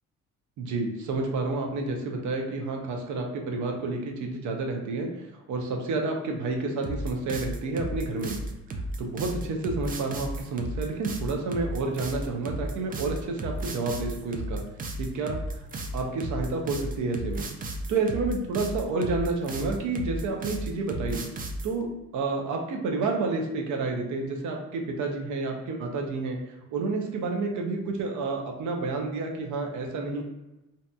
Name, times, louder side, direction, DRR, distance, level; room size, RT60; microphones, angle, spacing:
voice 1, 0.6-5.1 5.5-8.4 9.0-14.6 15.0-15.4 15.9-17.5 17.9-21.2 21.6-21.9 22.1-26.4 26.7-30.2, right 3 dB, 75° right, 2 dB, 0.6 m, -30 dB
sound 1, 6.8-21.7, right 1 dB, 30° right, 0.3 m, -34 dB
2.6 x 2.6 x 2.2 m, 0.99 s
cardioid pair, 90°, 30 cm